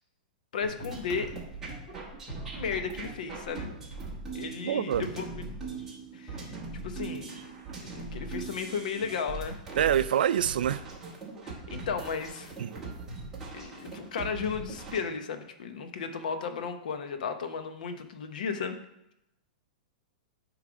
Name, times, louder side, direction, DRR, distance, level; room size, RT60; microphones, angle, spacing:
voice 1, 0.5-1.3 2.5-3.7 4.3-5.2 6.1-6.5 6.8-7.4 7.8-9.6 11.4-12.5 13.5-18.8, left 6 dB, 60° left, 8 dB, 0.8 m, -34 dB
sound 1, 0.6-15.0, right 3 dB, 10° right, 1.2 m, -40 dB
voice 2, 4.6-5.1 9.8-10.9 12.6-12.7, right 10 dB, 85° right, 15 dB, 0.3 m, -26 dB
8.5 x 3.2 x 5.0 m, 0.84 s
supercardioid pair, 175°, 5 cm